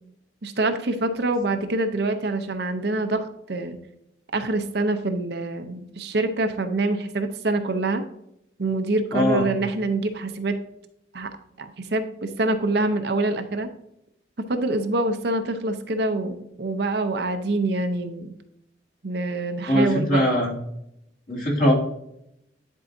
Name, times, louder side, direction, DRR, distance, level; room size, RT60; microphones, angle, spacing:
voice 1, 0.4-3.8 4.3-8.0 8.6-10.5 11.1-11.3 11.6-13.7 14.4-18.3 19.0-20.3, right 2 dB, 60° right, 7 dB, 0.7 m, -25 dB
voice 2, 9.1-9.4 19.7-20.5 21.3-21.7, equal, 45° left, -3 dB, 2.3 m, -21 dB
10.5 x 4.7 x 2.7 m, 0.78 s
head